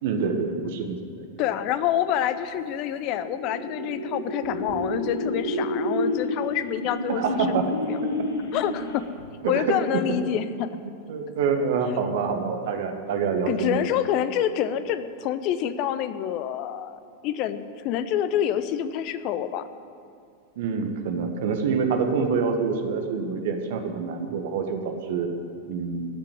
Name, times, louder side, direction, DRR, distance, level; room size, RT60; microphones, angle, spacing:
voice 1, 0.0-1.0 7.1-7.6 9.4-10.0 10.8-13.8 20.5-25.3 25.7-26.1, right 5 dB, 55° right, 5 dB, 1.7 m, -26 dB
voice 2, 1.4-8.0 8.5-9.1 9.5-10.8 13.5-19.7, left 10 dB, 40° left, 12 dB, 0.8 m, -27 dB
sound 1, 2.7-9.2, left 1 dB, 70° left, 2.8 m, -30 dB
14.5 x 7.6 x 9.6 m, 2.5 s
figure-of-eight pair, 90°, 0 cm